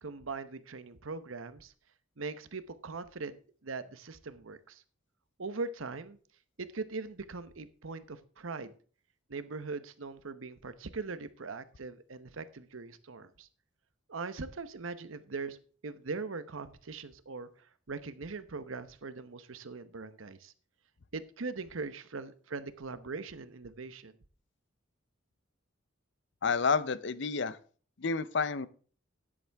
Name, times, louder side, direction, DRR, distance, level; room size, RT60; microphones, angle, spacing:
voice 1, 0.0-1.7 2.2-3.4 3.6-4.8 5.4-6.2 6.6-8.7 9.3-13.5 14.1-15.6 15.8-20.5 21.1-24.1, right 4 dB, 80° right, 12 dB, 0.9 m, -41 dB
voice 2, 26.4-27.6 28.0-28.7, left 5 dB, 60° left, 16 dB, 0.6 m, -29 dB
13.0 x 9.9 x 3.4 m, 0.42 s
head